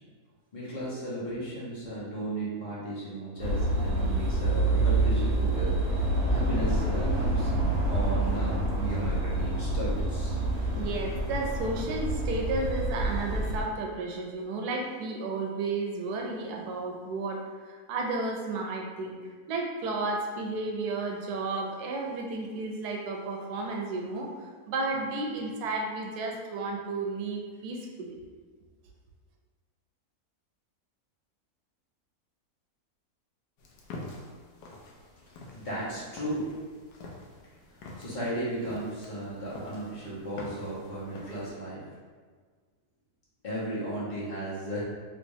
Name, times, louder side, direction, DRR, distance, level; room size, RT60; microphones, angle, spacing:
voice 1, 0.5-7.5 7.9-10.4 10.7-10.8 35.5-36.4 37.7-41.8 43.4-44.8, right 1 dB, 35° left, -9 dB, 1.0 m, -35 dB
sound 1, 3.4-13.6, right 2 dB, 55° right, 0.9 m, -27 dB
voice 2, 10.7-19.2 19.5-28.2, right 3 dB, 85° right, 0 dB, 1.1 m, -33 dB
sound 2, 33.6-41.5, left 2 dB, 85° left, 1.2 m, -46 dB
3.2 x 3.0 x 2.7 m, 1.5 s
omnidirectional pair, 1.6 m